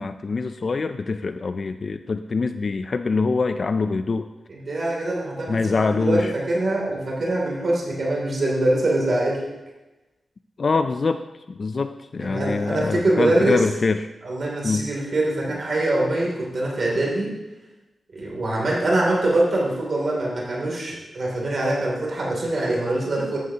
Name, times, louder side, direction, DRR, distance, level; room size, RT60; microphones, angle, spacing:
voice 1, 0.0-4.3 5.5-6.3 10.6-11.2 11.5-14.1 14.6-14.9, left 4 dB, 40° left, 9 dB, 0.3 m, -24 dB
voice 2, 4.5-9.4 12.2-13.6 14.2-17.3 18.1-23.4, right 2 dB, 50° right, -3 dB, 2.8 m, -23 dB
14.5 x 11.0 x 2.8 m, 1.1 s
wide cardioid pair, 160°, 0 cm